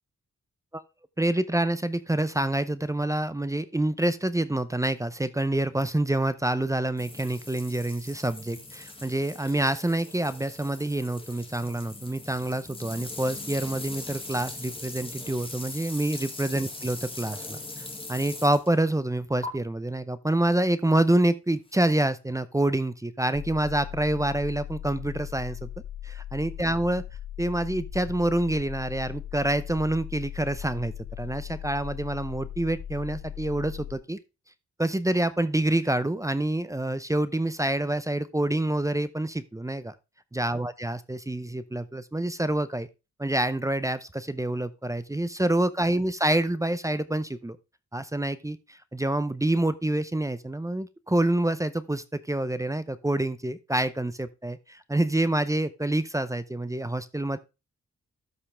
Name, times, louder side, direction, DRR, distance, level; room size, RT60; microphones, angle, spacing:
voice 1, 1.2-25.7 26.0-27.0 27.4-34.2 34.8-39.9 40.3-42.9 43.2-47.6 47.9-57.4, right 1 dB, 10° right, 14 dB, 0.6 m, -27 dB
sound 1, 7.0-18.8 19.4-19.5 21.8-22.0, left 2 dB, 20° left, 1.8 m, -40 dB
sound 2, 23.3-34.0, left 11 dB, 35° left, 0.5 m, -39 dB
13.0 x 5.6 x 3.2 m, 0.26 s
wide cardioid pair, 145°, 30 cm